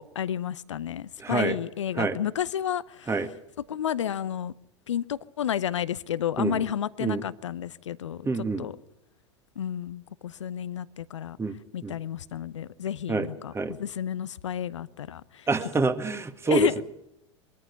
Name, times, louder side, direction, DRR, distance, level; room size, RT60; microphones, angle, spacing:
voice 1, 0.0-3.1 3.7-4.5 4.9-8.8 9.6-11.4 11.7-15.5 16.5-16.8, left 10 dB, 75° left, 0.8 m, -31 dB
voice 2, 1.2-1.6 2.0-2.2 3.1-3.3 6.4-6.6 7.0-7.2 8.2-8.7 11.4-11.5 11.8-11.9 13.1-13.3 13.5-13.7 15.5-16.8, right 4 dB, 15° right, 1.8 m, -26 dB
22.5 x 14.0 x 9.7 m
figure-of-eight pair, 85°, 15 cm